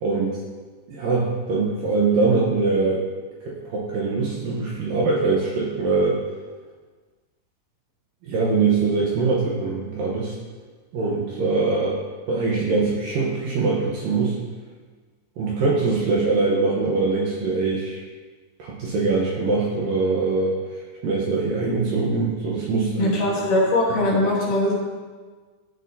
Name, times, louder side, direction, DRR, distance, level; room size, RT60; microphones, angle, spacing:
voice 1, 0.0-0.4 0.9-3.0 3.5-6.2 8.3-10.3 10.9-12.0 12.3-14.4 15.4-18.0 18.6-20.6 21.0-23.2, right 3 dB, 70° right, -4 dB, 2.3 m, -22 dB
voice 2, 23.0-24.7, left 1 dB, 60° left, -5 dB, 2.6 m, -21 dB
14.0 x 6.3 x 2.7 m, 1.4 s
omnidirectional pair, 4.9 m